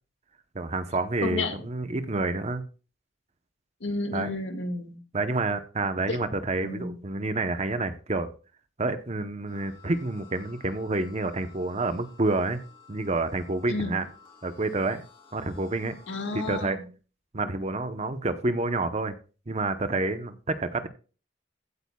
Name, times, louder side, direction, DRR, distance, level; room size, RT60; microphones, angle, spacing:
voice 1, 0.5-2.6 4.1-4.3 5.1-8.3 8.8-12.6 12.9-14.1 14.4-15.0 15.3-16.0 16.3-16.8 17.3-19.1 19.5-20.9, right 2 dB, 35° right, 10 dB, 0.8 m, -28 dB
voice 2, 1.2-1.6 3.8-5.0 6.1-6.2 6.6-7.0 13.7-13.9 16.1-16.8, left 3 dB, 80° left, 6 dB, 1.9 m, -31 dB
sound 1, 9.5-16.7, left 4 dB, 30° left, 4.2 m, -54 dB
15.5 x 8.9 x 2.3 m, 0.35 s
head